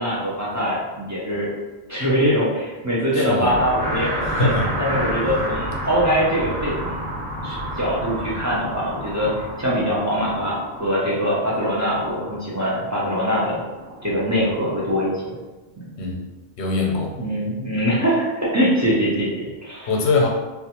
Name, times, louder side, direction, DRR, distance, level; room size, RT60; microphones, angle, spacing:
voice 1, 0.0-1.5 1.9-7.0 7.4-13.6 14.0-15.4 17.1-19.9, equal, 30° right, -7 dB, 0.3 m, -23 dB
voice 2, 3.1-3.5 4.2-4.7 16.0-16.2 16.6-17.1 19.9-20.3, left 3 dB, 80° left, -1 dB, 0.8 m, -22 dB
sound 1, 3.4-14.5, equal, 85° right, 1.1 m, -30 dB
2.3 x 2.2 x 2.8 m, 1.2 s
omnidirectional pair, 1.1 m